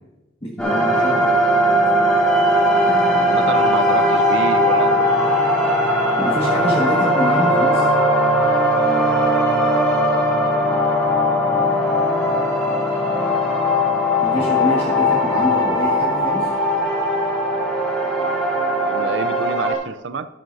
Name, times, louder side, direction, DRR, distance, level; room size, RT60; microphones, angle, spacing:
voice 1, 0.4-1.4 2.9-3.6 6.2-7.9 14.2-16.5, equal, 30° left, -4 dB, 1.6 m, -26 dB
sound 1, 0.6-19.7, equal, 5° left, 3.0 m, -18 dB
voice 2, 3.3-5.1 18.7-20.3, right 4 dB, 65° right, 11 dB, 0.5 m, -27 dB
13.0 x 11.5 x 2.7 m, 1.1 s
head